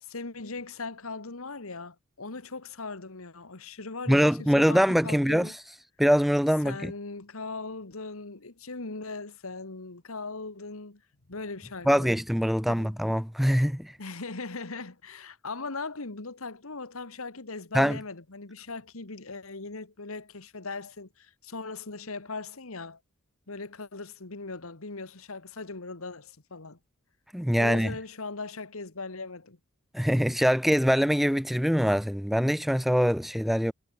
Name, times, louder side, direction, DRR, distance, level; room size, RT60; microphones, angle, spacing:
voice 1, 0.0-5.5 6.6-11.0 11.3-12.2 12.7-12.9 14.0-23.0 23.5-26.8 27.6-29.6, left 3 dB, 70° left, 1.8 m, -39 dB
voice 2, 4.1-5.5 6.0-6.9 11.9-13.9 17.7-18.0 27.3-27.9 29.9-33.7, equal, ahead, 0.5 m, -23 dB
head